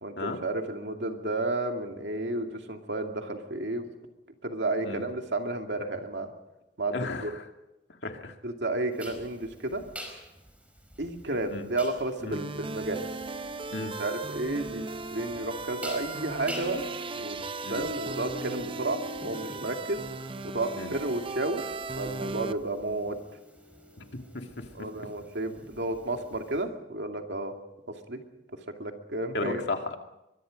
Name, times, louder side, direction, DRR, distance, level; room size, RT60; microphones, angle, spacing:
voice 1, 0.0-3.9 4.4-6.3 6.8-7.3 8.4-9.8 11.0-13.0 13.8-16.8 17.2-17.4 17.7-20.0 20.4-21.7 22.0-23.2 24.7-27.5 28.1-28.2 28.8-29.6, right 2 dB, 70° right, 4 dB, 2.5 m, -32 dB
voice 2, 6.9-7.5 8.0-8.3 11.5-11.7 12.2-12.4 13.7-13.9 17.6-17.8 20.7-20.9 24.1-25.1 29.3-30.0, left 2 dB, 70° left, 4 dB, 2.2 m, -35 dB
sound 1, 9.0-26.6, equal, 10° right, 4.9 m, -45 dB
sound 2, 12.3-22.5, right 3 dB, 30° right, 0.7 m, -37 dB
24.0 x 22.5 x 5.3 m, 0.92 s
head